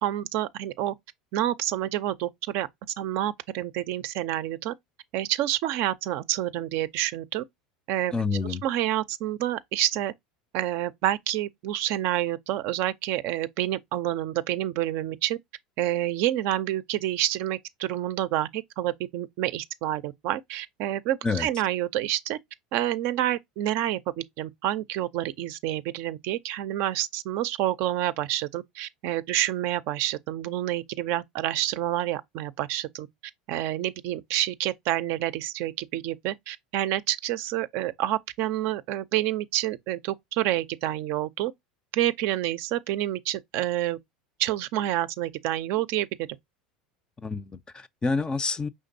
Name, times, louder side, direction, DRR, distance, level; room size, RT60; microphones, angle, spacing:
voice 1, 0.0-0.9 1.3-2.7 3.0-4.7 5.1-7.4 7.9-8.1 8.6-10.1 10.5-15.4 15.8-22.4 22.7-33.1 33.5-41.5 41.9-44.0 44.4-46.1, right 13 dB, 60° right, 0.4 m, -28 dB
voice 2, 8.1-8.6 21.2-21.5 47.2-48.7, left 4 dB, 20° left, 0.4 m, -28 dB
5.1 x 3.6 x 2.6 m
hypercardioid pair, 85°, 4 cm